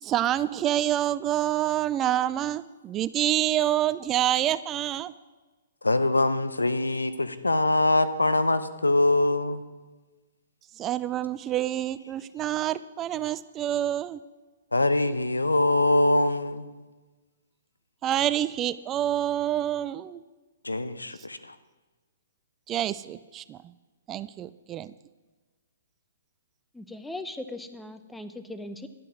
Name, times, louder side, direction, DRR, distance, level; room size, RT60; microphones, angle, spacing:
voice 1, 0.0-5.1 10.8-14.2 18.0-20.2 22.7-23.7 24.1-24.9, right 12 dB, 20° right, 16 dB, 0.3 m, -27 dB
voice 2, 5.8-9.6 14.7-16.7 20.6-21.5, left 2 dB, 85° left, 12 dB, 0.7 m, -23 dB
voice 3, 26.7-28.9, left 2 dB, 5° left, 10 dB, 0.7 m, -39 dB
11.0 x 8.3 x 6.2 m, 1.3 s
figure-of-eight pair, 125°, 0 cm